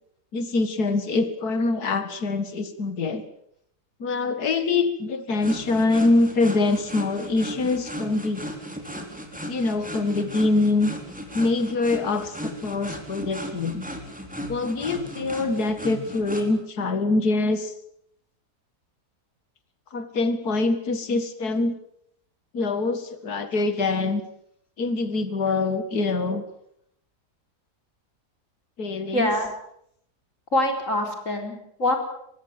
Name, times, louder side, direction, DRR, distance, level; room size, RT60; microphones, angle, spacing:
voice 1, 0.3-3.2 4.0-8.5 9.4-10.9 11.3-13.8 14.5-17.7 19.9-21.8 22.5-24.2 24.8-26.4 28.8-29.3, left 3 dB, 70° left, 10 dB, 2.5 m, -24 dB
sound 1, 5.4-16.5, equal, 5° right, 3.9 m, -36 dB
voice 2, 29.1-29.5 30.5-32.0, left 1 dB, 50° left, 4 dB, 4.6 m, -25 dB
23.5 x 21.5 x 7.6 m, 0.73 s
omnidirectional pair, 1.7 m